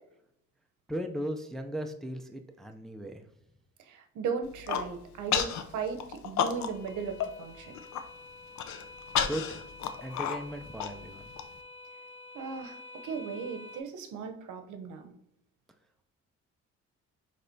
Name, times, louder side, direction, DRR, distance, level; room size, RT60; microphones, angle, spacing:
voice 1, 0.9-3.2 9.3-9.6 10.0-11.3, equal, ahead, 5 dB, 0.4 m, -37 dB
voice 2, 3.9-7.7 12.3-15.1, right 5 dB, 80° right, 6 dB, 0.7 m, -37 dB
Human voice, 4.4-4.9 5.3-5.6 6.0-6.9 7.2-7.3 7.7-8.0 8.6-11.4, left 8 dB, 65° left, 0.5 m, -31 dB
sound 1, 5.1-13.8, left 2 dB, 40° left, 1.0 m, -50 dB
6.1 x 3.2 x 2.6 m, 0.78 s
cardioid pair, 90°, 30 cm